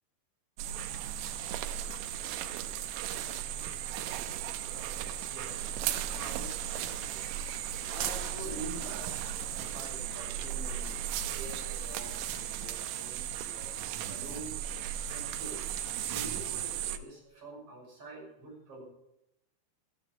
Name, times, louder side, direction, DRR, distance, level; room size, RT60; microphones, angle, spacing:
sound 1, 0.6-17.0, right 10 dB, 90° right, 3.4 m, -36 dB
voice 1, 4.7-10.9 11.3-15.6 16.0-18.8, right 2 dB, 30° right, -2 dB, 6.7 m, -47 dB
14.0 x 11.5 x 7.3 m, 0.86 s
omnidirectional pair, 5.6 m